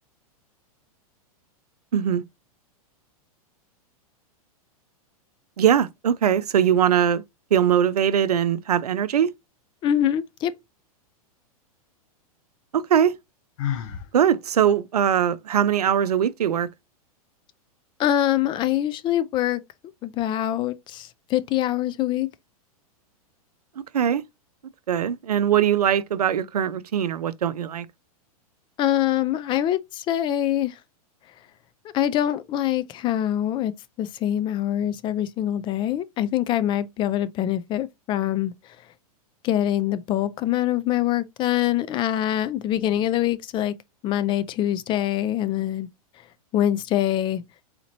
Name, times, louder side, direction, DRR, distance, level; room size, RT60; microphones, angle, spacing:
voice 1, 1.9-2.2 5.6-7.2 7.5-9.3 12.7-13.2 14.1-16.7 23.9-24.2 24.9-27.9, right 9 dB, 90° right, 0.5 m, -21 dB
voice 2, 9.8-10.5 18.0-19.6 20.0-22.3 28.8-30.7 31.9-33.7 34.0-38.5 39.4-43.7 44.0-45.9 46.5-47.4, left 12 dB, 25° left, 0.3 m, -24 dB
Sigh, 13.6-14.1, left 10 dB, 60° left, 0.9 m, -28 dB
4.1 x 2.9 x 2.7 m
hypercardioid pair, 115°, 19 cm